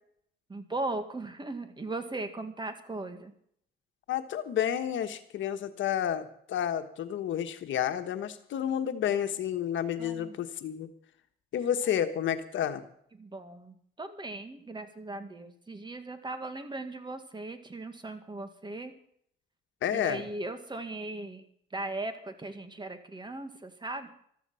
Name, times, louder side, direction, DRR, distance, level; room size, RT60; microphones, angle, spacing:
voice 1, 0.5-3.3 10.0-10.4 13.2-18.9 19.9-21.4 21.7-24.1, right 2 dB, 20° right, 8 dB, 1.9 m, -38 dB
voice 2, 4.1-10.9 11.5-12.8 19.8-20.2, left 9 dB, 75° left, 8 dB, 1.3 m, -30 dB
14.0 x 13.5 x 5.7 m, 0.67 s
cardioid pair, 90°, 20 cm